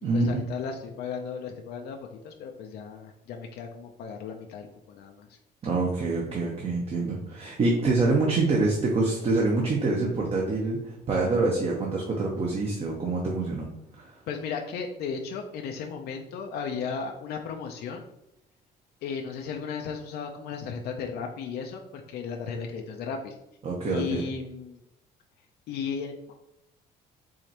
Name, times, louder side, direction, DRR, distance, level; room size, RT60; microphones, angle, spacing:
voice 1, 0.1-5.3 14.3-18.0 19.0-23.4 23.9-24.8 25.7-26.3, left 6 dB, 70° left, 2 dB, 0.5 m, -35 dB
voice 2, 5.6-13.7 13.9-14.2 23.6-24.2, right 3 dB, 35° right, -1 dB, 0.8 m, -26 dB
4.9 x 3.1 x 2.9 m, 0.85 s
cardioid pair, 110°, 17 cm